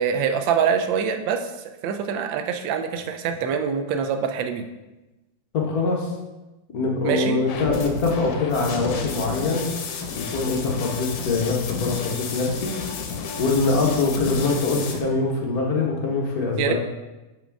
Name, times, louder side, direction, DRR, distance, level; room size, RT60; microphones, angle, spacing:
voice 1, 0.0-1.5 1.8-4.6 7.0-7.4 16.6-16.7, right 7 dB, 90° right, 7 dB, 1.3 m, -24 dB
voice 2, 5.5-6.1 6.7-9.7 10.1-12.7 13.4-16.7, left 3 dB, 60° left, -1 dB, 1.4 m, -23 dB
sound 1, 7.5-15.0, left 5 dB, 85° left, 1.4 m, -32 dB
6.1 x 4.8 x 3.4 m, 1.1 s
omnidirectional pair, 2.0 m